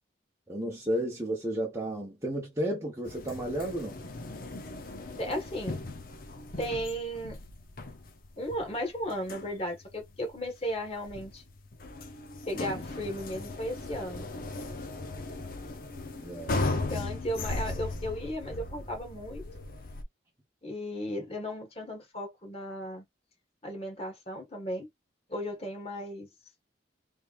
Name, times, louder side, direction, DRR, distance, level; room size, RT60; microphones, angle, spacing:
voice 1, 0.5-4.0 16.2-16.8, right 1 dB, 15° right, 1.1 m, -33 dB
sound 1, 3.0-20.0, left 2 dB, 50° left, 0.7 m, -38 dB
voice 2, 5.2-5.8 6.6-7.4 8.4-11.4 12.5-14.3 16.9-19.4 20.6-23.0 23.6-24.9 25.3-26.3, equal, 30° left, 1.6 m, -35 dB
3.5 x 3.2 x 2.5 m
head